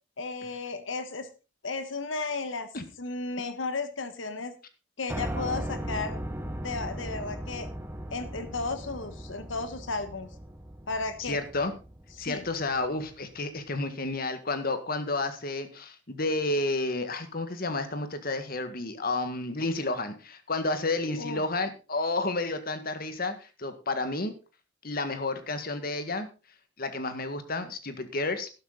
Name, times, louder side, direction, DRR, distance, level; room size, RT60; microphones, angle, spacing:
voice 1, 0.2-1.3 1.6-2.7 3.0-4.5 5.0-6.2 6.6-7.7 8.1-10.3 10.9-11.4 12.2-12.4 21.2-21.4, left 3 dB, 80° left, 10 dB, 1.4 m, -34 dB
Piano, 5.1-13.1, equal, 10° right, 1.3 m, -38 dB
voice 2, 11.2-11.7 12.2-24.3 24.8-26.3 26.8-28.5, left 2 dB, 50° left, 9 dB, 1.8 m, -31 dB
12.0 x 11.5 x 4.0 m, 0.32 s
head